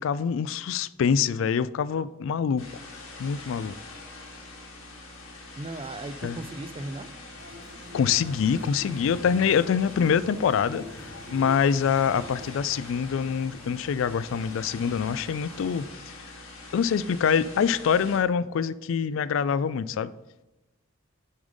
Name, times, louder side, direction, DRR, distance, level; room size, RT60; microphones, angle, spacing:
voice 1, 0.0-2.6 3.2-3.8 6.2-6.3 7.9-16.2 16.7-20.1, left 7 dB, 65° left, 0.3 m, -25 dB
sound 1, 2.6-18.2, left 2 dB, 85° left, 1.6 m, -44 dB
voice 2, 5.6-7.1, right 2 dB, 25° right, 0.4 m, -36 dB
sound 2, 7.4-12.6, left 1 dB, 55° right, 1.4 m, -46 dB
Stream, 8.0-15.8, left 1 dB, 10° left, 1.0 m, -49 dB
7.1 x 5.2 x 5.2 m
head